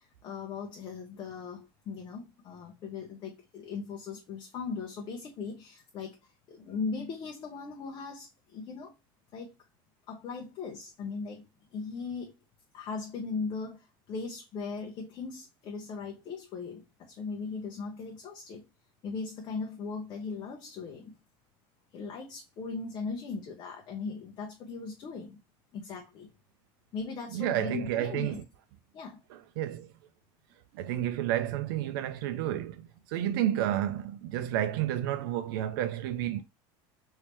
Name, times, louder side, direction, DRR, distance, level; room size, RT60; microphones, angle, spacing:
voice 1, 0.2-6.1 6.5-8.3 8.5-8.9 9.3-9.5 10.1-11.4 11.7-12.3 12.7-13.8 14.1-16.8 17.2-18.6 19.0-21.1 21.9-25.4 25.7-26.3 26.9-28.4 28.9-29.2, left 4 dB, 40° left, 0.7 m, -38 dB
voice 2, 27.3-28.4 29.3-29.9 30.7-36.4, right 12 dB, 80° right, 0.4 m, -31 dB
3.3 x 2.7 x 3.0 m
supercardioid pair, 135°, 12 cm